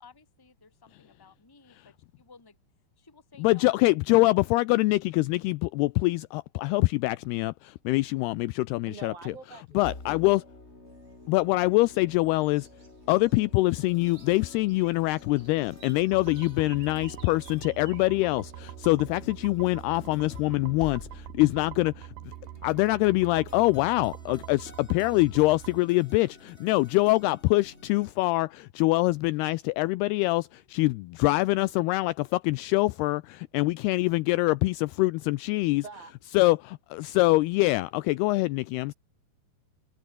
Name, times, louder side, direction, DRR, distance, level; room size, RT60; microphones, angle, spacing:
voice 1, 0.0-2.6 3.0-3.7 4.2-4.3, left 5 dB, 35° left, 0.3 m, -55 dB
voice 2, 3.4-9.1 9.8-10.4 11.3-12.7 13.1-22.3 22.6-35.8 36.4-38.9, left 21 dB, 80° left, 2.5 m, -24 dB
voice 3, 8.9-10.0 35.8-36.2, right 4 dB, 55° right, 8.1 m, -44 dB
sound 1, 9.8-28.1, left 2 dB, 15° left, 4.0 m, -49 dB
sound 2, 10.9-18.9, right 5 dB, 35° right, 3.6 m, -56 dB
sound 3, 16.1-25.8, right 19 dB, 80° right, 2.2 m, -44 dB
omnidirectional pair, 4.8 m